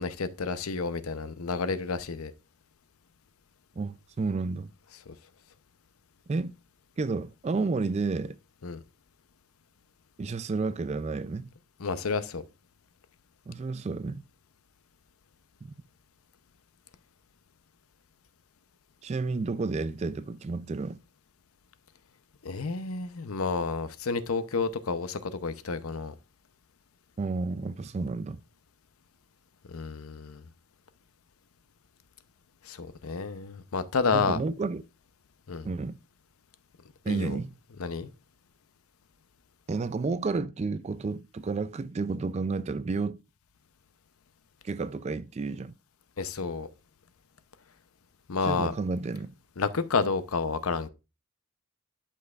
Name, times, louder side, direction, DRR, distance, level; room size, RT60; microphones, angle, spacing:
voice 1, 0.0-2.3 5.1-5.2 8.6-8.8 11.8-12.4 22.4-26.1 29.7-30.4 32.6-34.4 35.5-35.7 37.1-37.4 37.8-38.1 46.2-46.7 48.3-48.7 49.6-50.9, left 4 dB, 85° left, 0.7 m, -30 dB
voice 2, 3.8-4.7 6.3-6.5 7.0-8.4 10.2-11.5 13.5-14.2 19.0-21.0 27.2-28.4 34.1-34.8 35.6-35.9 37.0-37.5 39.7-43.2 44.6-45.7 48.4-49.3, right 3 dB, 30° right, 0.3 m, -31 dB
11.5 x 5.4 x 2.4 m
head